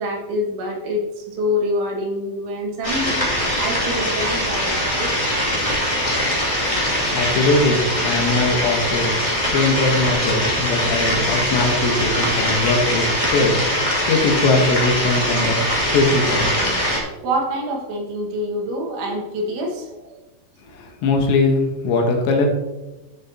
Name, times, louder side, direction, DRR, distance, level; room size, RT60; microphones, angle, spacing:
voice 1, 0.0-5.1 17.2-20.0, left 1 dB, 85° right, -2 dB, 4.3 m, -26 dB
sound 1, 2.8-17.0, equal, 20° left, 1.0 m, -22 dB
voice 2, 7.1-9.2 9.5-16.5 20.7-22.5, left 3 dB, 75° left, 2 dB, 3.4 m, -20 dB
12.5 x 7.4 x 2.9 m, 1.0 s
omnidirectional pair, 5.3 m